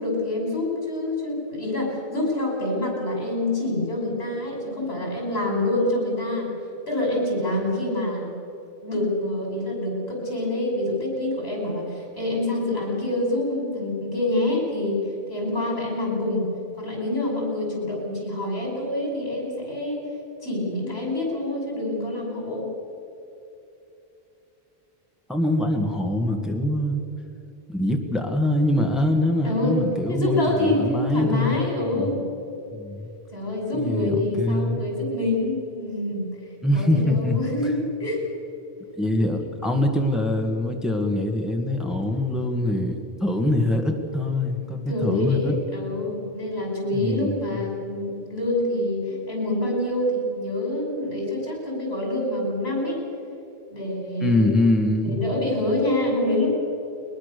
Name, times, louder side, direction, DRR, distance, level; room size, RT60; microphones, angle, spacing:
voice 1, 0.0-6.5 6.9-8.3 8.8-16.5 16.8-20.0 20.4-22.7 29.4-32.2 33.3-36.4 36.7-38.2 39.1-39.2 39.4-39.5 44.9-53.0 53.7-54.5 55.0-56.5, left 1 dB, 85° left, -1 dB, 6.4 m, -26 dB
voice 2, 25.3-27.0 27.7-31.5 32.0-32.1 32.7-33.1 33.8-34.8 36.6-37.4 39.0-45.6 46.9-47.4 54.2-55.2, left 1 dB, ahead, 2 dB, 1.8 m, -23 dB
22.0 x 20.5 x 6.8 m, 2.9 s
omnidirectional pair, 1.0 m